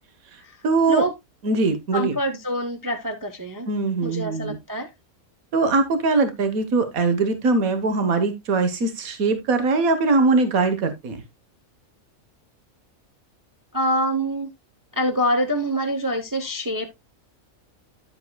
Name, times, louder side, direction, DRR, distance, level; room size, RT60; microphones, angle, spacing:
voice 1, 0.6-1.0 1.4-2.2 3.7-4.6 5.5-11.2, right 3 dB, 85° right, 1.6 m, -21 dB
voice 2, 1.9-3.7 4.0-4.9 13.7-14.5 14.9-17.0, equal, 20° right, 0.6 m, -25 dB
10.5 x 7.7 x 2.2 m
omnidirectional pair, 1.4 m